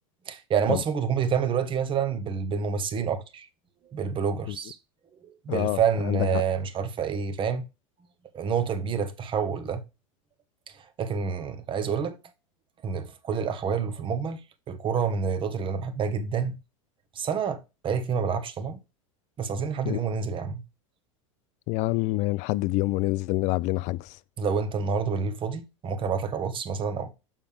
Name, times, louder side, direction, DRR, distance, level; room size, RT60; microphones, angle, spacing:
voice 1, 0.3-3.5 3.9-4.8 5.4-7.7 8.3-9.8 11.0-12.2 12.8-14.4 14.7-16.6 17.1-17.6 17.8-18.8 19.4-20.6 24.4-27.1, right 6 dB, 30° right, 1.1 m, -28 dB
voice 2, 5.5-5.8 6.0-6.3 19.9-20.0 21.7-24.1, left 19 dB, 45° left, 0.4 m, -26 dB
6.8 x 5.5 x 3.3 m
hypercardioid pair, 90°, 17 cm